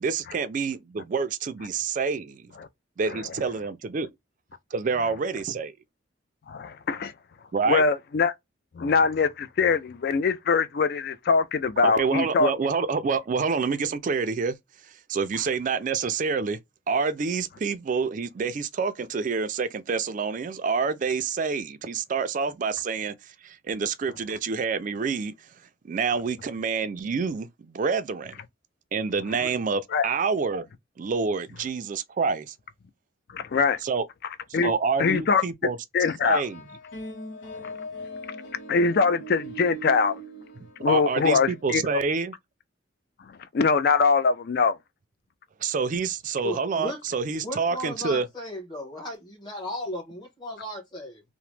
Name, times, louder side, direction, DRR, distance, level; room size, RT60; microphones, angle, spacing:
voice 1, 0.0-2.5 3.0-4.1 4.7-5.7 7.5-7.8 11.8-14.6 15.1-16.6 16.9-23.1 23.4-25.3 25.8-28.4 28.9-30.7 31.0-32.5 33.8-34.1 34.6-35.8 36.2-36.6 40.6-42.3 45.6-48.3, right 5 dB, 40° right, 0.3 m, -27 dB
voice 2, 6.5-7.1 7.7-8.3 8.8-12.5 29.9-30.1 33.3-33.8 34.5-34.7 35.0-35.4 35.9-36.4 37.6-37.7 38.7-40.2 40.8-41.8 43.5-44.8, left 5 dB, 50° left, 0.4 m, -22 dB
sound 1, 36.4-41.6, right 1 dB, 85° left, 0.8 m, -40 dB
voice 3, 46.4-47.0 47.4-51.2, left 1 dB, 20° left, 1.1 m, -35 dB
2.9 x 2.0 x 3.2 m
head